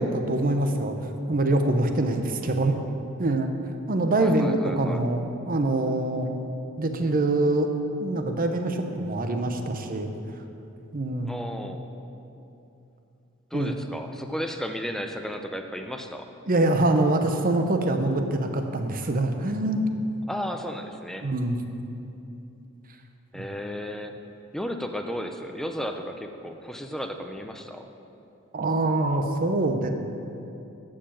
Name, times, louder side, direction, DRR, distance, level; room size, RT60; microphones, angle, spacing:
voice 1, 0.0-2.7 3.2-3.5 3.9-4.5 4.8-6.3 6.8-7.7 8.0-10.1 10.9-11.3 13.5-13.7 16.5-19.8 21.2-21.6 23.3-23.4 28.5-29.9, right 2 dB, 45° right, 6 dB, 0.8 m, -24 dB
voice 2, 2.4-2.9 4.2-5.0 11.2-11.8 13.5-16.3 20.3-21.3 23.3-24.1 24.5-27.9, equal, ahead, 5 dB, 0.5 m, -34 dB
12.0 x 4.8 x 7.4 m, 2.8 s
head